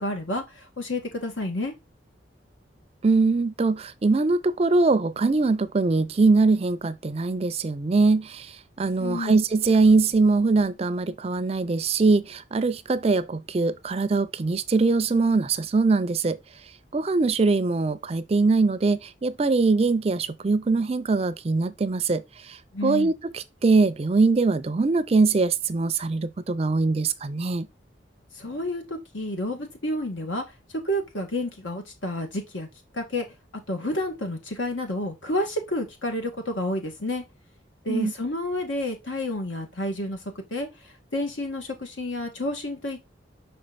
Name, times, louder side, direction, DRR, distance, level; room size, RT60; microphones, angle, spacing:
voice 1, 0.0-1.7 9.0-9.4 22.7-23.1 28.3-30.4 30.7-32.7 32.9-33.2 33.7-37.2 37.8-40.2 40.5-40.7 41.1-43.1, left 1 dB, 85° left, 1.8 m, -30 dB
voice 2, 3.0-16.4 16.9-27.7 37.9-38.1, right 3 dB, 30° right, 0.4 m, -22 dB
5.7 x 4.3 x 4.0 m
head